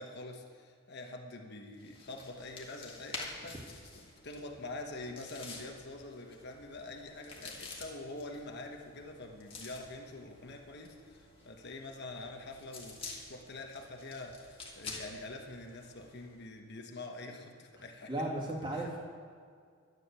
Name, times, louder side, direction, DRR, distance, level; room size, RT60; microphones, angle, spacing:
voice 1, 0.0-18.1 18.7-19.0, left 2 dB, 50° left, 3 dB, 1.3 m, -45 dB
sound 1, 1.7-16.4, left 3 dB, 25° left, 1.8 m, -49 dB
voice 2, 18.1-19.0, right 1 dB, 20° right, -4 dB, 2.6 m, -35 dB
12.5 x 9.6 x 7.0 m, 2.1 s
head